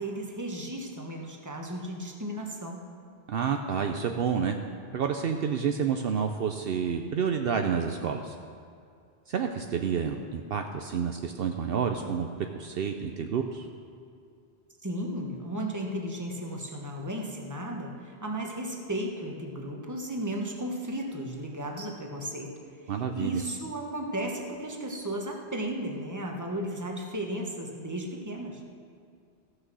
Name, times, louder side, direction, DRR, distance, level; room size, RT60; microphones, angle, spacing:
voice 1, 0.0-2.8 14.8-22.5 22.8-28.6, right 1 dB, 15° right, 1 dB, 1.2 m, -35 dB
voice 2, 3.3-4.6 4.9-8.3 9.3-13.7 22.9-23.4, right 7 dB, 65° right, 5 dB, 0.8 m, -29 dB
15.0 x 6.4 x 6.2 m, 2.3 s
omnidirectional pair, 1.1 m